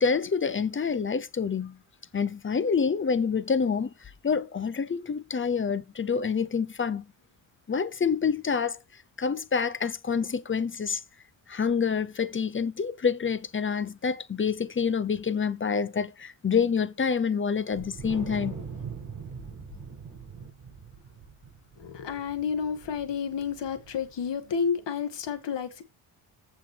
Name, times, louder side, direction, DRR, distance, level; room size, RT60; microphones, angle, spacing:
voice 1, 0.0-1.8 2.1-3.9 4.2-7.0 7.7-8.8 9.2-11.0 11.5-18.5, left 6 dB, 25° left, 0.7 m, -27 dB
Wind, 17.7-24.2, right 5 dB, 45° right, 6.9 m, -42 dB
voice 2, 21.8-25.8, left 6 dB, 60° left, 2.1 m, -30 dB
15.0 x 5.6 x 3.4 m
cardioid pair, 125°, 48 cm